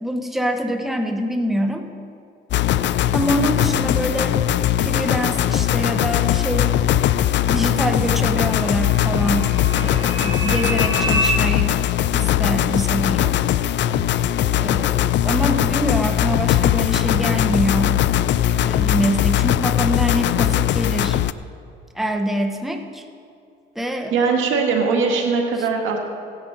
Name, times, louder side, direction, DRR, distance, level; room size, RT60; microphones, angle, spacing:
voice 1, 0.0-1.9 3.1-4.4 4.8-6.7 7.5-11.8 12.1-13.4 14.6-18.0 18.6-21.2 21.9-23.0 23.7-24.3 25.6-25.7, equal, ahead, 4 dB, 1.1 m, -25 dB
sound 1, 2.5-21.3, left 12 dB, 65° left, 0.4 m, -20 dB
sound 2, 7.0-11.3, equal, 20° right, 2.3 m, -28 dB
voice 2, 24.1-26.0, right 4 dB, 85° right, 1 dB, 1.8 m, -20 dB
16.5 x 10.0 x 4.0 m, 2.4 s
cardioid pair, 90°, 20 cm